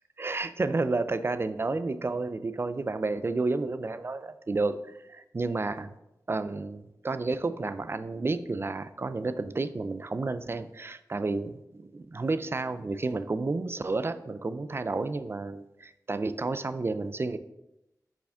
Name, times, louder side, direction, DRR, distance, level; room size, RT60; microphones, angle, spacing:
voice 1, 0.2-6.0 6.3-17.4, right 3 dB, 40° right, 12 dB, 0.4 m, -31 dB
6.7 x 5.0 x 3.7 m, 0.90 s
wide cardioid pair, 95°, 7 cm